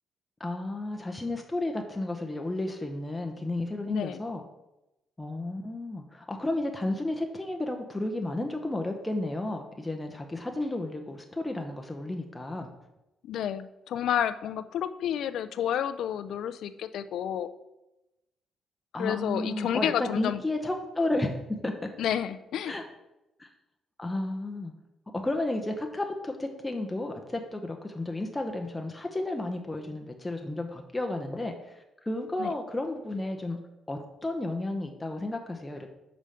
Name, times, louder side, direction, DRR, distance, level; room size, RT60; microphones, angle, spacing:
voice 1, 0.4-4.4 5.2-12.7 18.9-21.8 22.7-22.8 23.4-23.5 24.0-24.7 25.1-33.6 33.9-35.9, left 2 dB, 10° left, 3 dB, 0.7 m, -32 dB
voice 2, 3.9-4.2 13.2-17.5 19.0-20.4 22.0-22.7 32.4-32.5, left 9 dB, 75° left, 12 dB, 0.4 m, -30 dB
5.1 x 4.9 x 5.6 m, 0.95 s
cardioid pair, 90°, 0 cm